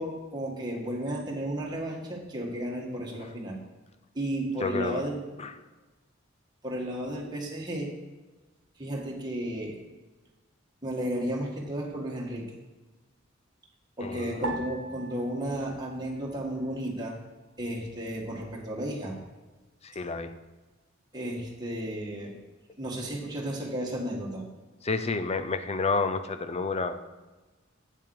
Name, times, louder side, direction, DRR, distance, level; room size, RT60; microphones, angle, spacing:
voice 1, 0.0-3.6 4.1-5.2 6.6-7.9 8.8-9.8 10.8-12.5 14.0-17.2 17.6-19.2 21.1-22.4 22.8-24.5, right 1 dB, 20° right, -2 dB, 1.8 m, -33 dB
voice 2, 4.6-5.0 5.4-5.5 14.0-14.3 19.8-20.3 24.8-27.0, left 4 dB, 30° left, 9 dB, 0.6 m, -30 dB
sound 1, 14.4-17.0 17.2-18.1 18.7-19.2, right 3 dB, 85° right, 1.1 m, -41 dB
8.6 x 7.1 x 4.9 m, 1.2 s
head